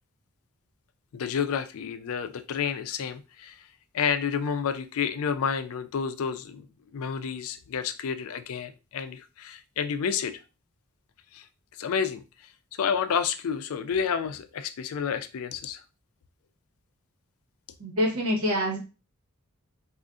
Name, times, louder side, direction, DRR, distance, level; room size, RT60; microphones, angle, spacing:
voice 1, 1.1-3.7 3.9-6.7 6.9-10.4 11.3-11.5 11.8-15.8, left 7 dB, 75° left, 0.4 m, -30 dB
voice 2, 17.8-18.8, equal, 80° right, 1.2 m, -26 dB
2.5 x 2.4 x 3.5 m
head